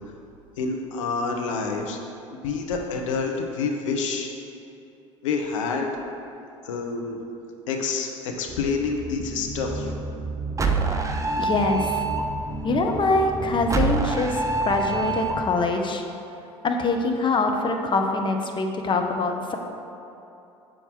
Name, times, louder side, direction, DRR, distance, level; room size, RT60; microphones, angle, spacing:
voice 1, 0.6-2.0 2.3-4.3 5.2-5.9 6.6-7.2 7.7-9.9, left 4 dB, 75° left, 2 dB, 0.8 m, -28 dB
sound 1, 8.5-15.4, right 3 dB, 20° right, 0.6 m, -27 dB
voice 2, 11.0-12.0 12.6-16.0 16.6-19.6, left 3 dB, 30° left, 3 dB, 0.8 m, -24 dB
7.1 x 6.2 x 3.6 m, 2.8 s
hypercardioid pair, 65°, 16 cm